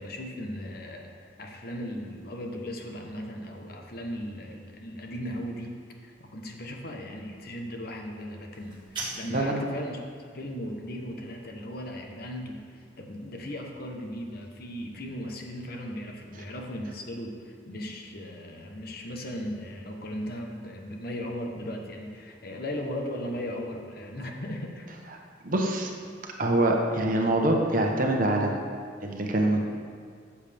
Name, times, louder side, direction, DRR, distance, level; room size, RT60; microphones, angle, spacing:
voice 1, 0.0-10.0 10.3-24.9, equal, 50° left, 2 dB, 1.1 m, -37 dB
sound 1, 8.5-9.5, right 2 dB, 25° right, 1.7 m, -38 dB
voice 2, 25.4-25.9 26.4-28.6 29.0-29.6, right 1 dB, 45° right, 1 dB, 1.1 m, -24 dB
13.5 x 7.3 x 3.5 m, 2.1 s
head